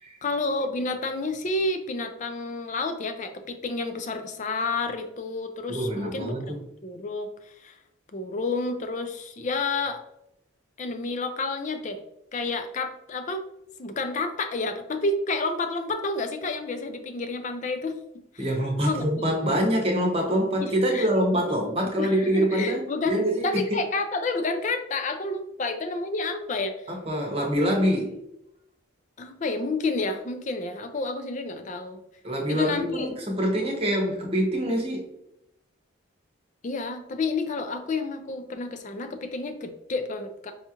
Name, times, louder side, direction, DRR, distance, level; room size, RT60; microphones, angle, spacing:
voice 1, 0.2-6.3 6.8-7.8 8.1-10.0 10.8-12.0 12.3-13.4 13.8-18.0 18.3-18.4 18.8-19.2 20.6-21.1 21.5-26.8 29.2-32.0 32.5-33.1 36.6-40.5, left 3 dB, 35° left, 8 dB, 0.4 m, -30 dB
voice 2, 5.7-6.6 18.4-23.8 26.9-28.2 32.2-35.0, equal, 25° right, 0 dB, 0.8 m, -25 dB
5.4 x 2.4 x 2.8 m, 0.83 s
head